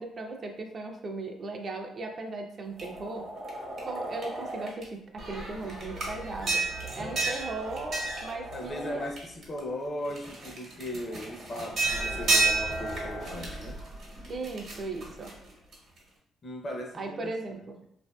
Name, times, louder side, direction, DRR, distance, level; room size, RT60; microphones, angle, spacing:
voice 1, 0.0-3.3 3.8-6.6 6.9-9.0 14.3-15.4 16.9-17.8, right 3 dB, 45° right, 3 dB, 0.4 m, -37 dB
sound 1, 2.8-4.8 5.2-9.6 10.0-16.0, right 3 dB, 65° right, 0.9 m, -32 dB
voice 2, 8.5-13.8 16.4-17.9, left 1 dB, 40° left, 1 dB, 0.5 m, -38 dB
2.5 x 2.5 x 2.2 m, 0.73 s
cardioid pair, 90°, 0 cm